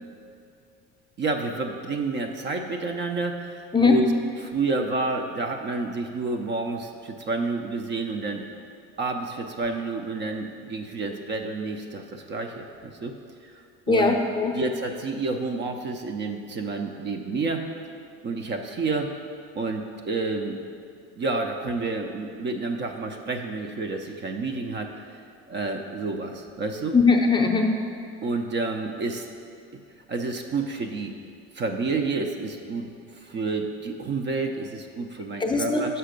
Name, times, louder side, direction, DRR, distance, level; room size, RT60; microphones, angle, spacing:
voice 1, 1.2-4.1 4.4-8.4 9.0-13.1 13.4-14.2 14.5-17.7 18.2-19.1 19.6-20.6 21.2-25.2 25.5-27.0 28.2-29.3 30.1-31.1 31.5-32.9 33.2-35.9, right 3 dB, 35° right, 4 dB, 0.5 m, -29 dB
voice 2, 13.9-14.5 26.9-27.7 35.4-35.8, left 4 dB, 15° left, 2 dB, 0.6 m, -20 dB
5.8 x 5.6 x 5.1 m, 2.4 s
supercardioid pair, 100°, 31 cm